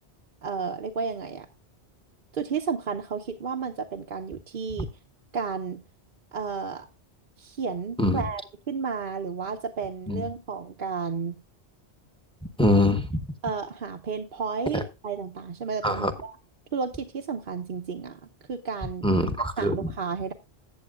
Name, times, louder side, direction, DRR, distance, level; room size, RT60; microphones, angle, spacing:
voice 1, 0.4-1.5 2.3-4.9 5.3-5.8 6.3-6.9 7.4-11.4 13.4-16.3 16.7-19.0 19.6-20.3, right 5 dB, 55° right, 3 dB, 0.9 m, -32 dB
voice 2, 12.6-13.2 14.7-14.8 15.8-16.1 19.0-19.9, left 1 dB, 5° left, 9 dB, 1.1 m, -23 dB
14.5 x 8.7 x 2.4 m, 0.27 s
omnidirectional pair, 1.1 m